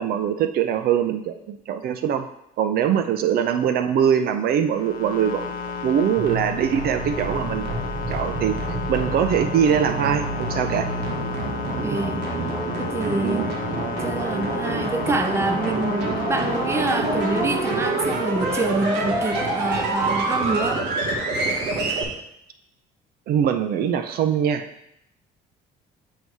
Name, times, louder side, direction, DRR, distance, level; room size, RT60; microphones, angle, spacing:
voice 1, 0.0-2.3 2.6-5.5 5.8-7.7 8.1-8.6 8.9-10.9 13.2-13.5 23.3-24.7, right 8 dB, 65° right, 8 dB, 0.5 m, -22 dB
sound 1, 4.6-18.8 21.0-21.6, left 6 dB, 55° left, 0.7 m, -33 dB
sound 2, 6.2-22.0, right 2 dB, 85° right, 1.1 m, -27 dB
voice 2, 11.8-12.2 12.8-13.5 14.0-20.9, right 3 dB, 15° right, 6 dB, 0.5 m, -26 dB
8.1 x 2.7 x 4.6 m, 0.79 s
cardioid pair, 110°, 17 cm